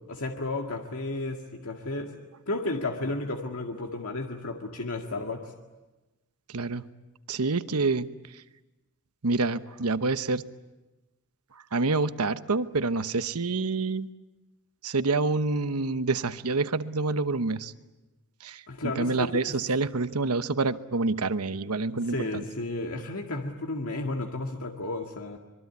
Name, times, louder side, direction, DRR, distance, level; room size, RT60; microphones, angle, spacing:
voice 1, 0.1-2.1 2.5-5.5 18.7-19.6 21.9-25.4, left 2 dB, 75° left, 2 dB, 2.0 m, -33 dB
voice 2, 6.5-6.8 7.3-8.1 9.2-10.4 11.7-14.1 14.8-17.7 18.4-22.4, right 3 dB, 80° right, 12 dB, 1.0 m, -27 dB
26.0 x 22.5 x 9.5 m, 1.1 s
head